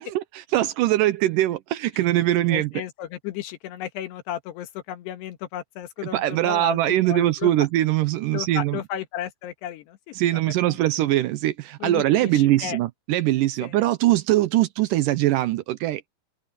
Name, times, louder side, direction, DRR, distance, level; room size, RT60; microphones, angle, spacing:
voice 1, 0.0-2.7 6.1-8.8 10.1-16.1, right 15 dB, 85° right, 1.8 m, -22 dB
voice 2, 2.4-6.8 7.1-7.5 8.3-10.0 10.6-10.8 11.8-12.8 13.6-13.7, left 11 dB, 90° left, 3.5 m, -34 dB
open air
omnidirectional pair, 4.7 m